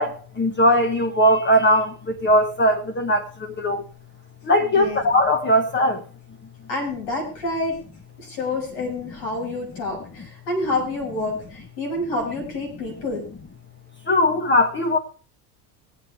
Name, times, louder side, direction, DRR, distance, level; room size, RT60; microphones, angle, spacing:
voice 1, 0.0-3.8 4.4-6.0 14.1-15.0, equal, 25° left, 1.1 m, -19 dB
voice 2, 4.6-5.0 6.7-7.8 8.2-13.3, left 2 dB, 80° left, 6.8 m, -28 dB
21.0 x 8.2 x 3.4 m
supercardioid pair, 110°, 48 cm